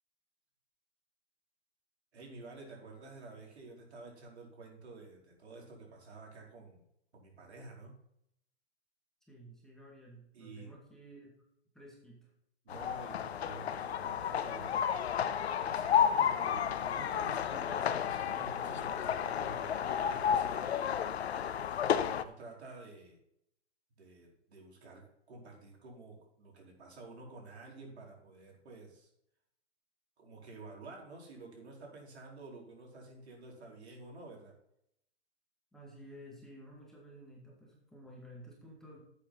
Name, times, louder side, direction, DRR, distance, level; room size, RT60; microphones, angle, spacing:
voice 1, 2.1-6.8 7.1-8.0 10.3-10.7 12.6-14.8 15.7-21.0 21.3-23.2 24.0-29.1 30.2-34.5, right 3 dB, 75° right, -1 dB, 4.5 m, -51 dB
voice 2, 9.3-11.3 11.7-12.3 35.7-39.0, equal, ahead, -3 dB, 2.2 m, -53 dB
sound 1, 12.7-22.2, left 8 dB, 70° left, 0.8 m, -32 dB
11.5 x 8.3 x 4.1 m, 0.75 s
hypercardioid pair, 135°, 33 cm